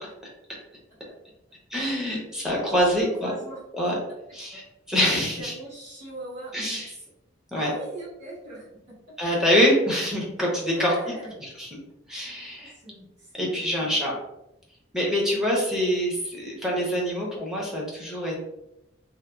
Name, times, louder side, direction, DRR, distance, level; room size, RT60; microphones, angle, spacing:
voice 1, 1.7-3.3 3.8-3.9 4.3-4.6 4.9-5.5 6.5-6.9 7.5-7.7 9.2-11.1 11.4-11.7 12.1-12.7 13.4-14.1 14.9-18.4, equal, 5° right, -4 dB, 0.6 m, -25 dB
voice 2, 2.4-3.6 4.5-4.6 5.4-7.0 7.5-9.0 10.6-11.3 12.6-14.2, right 1 dB, 40° right, -9 dB, 1.3 m, -41 dB
2.7 x 2.1 x 2.2 m, 0.88 s
head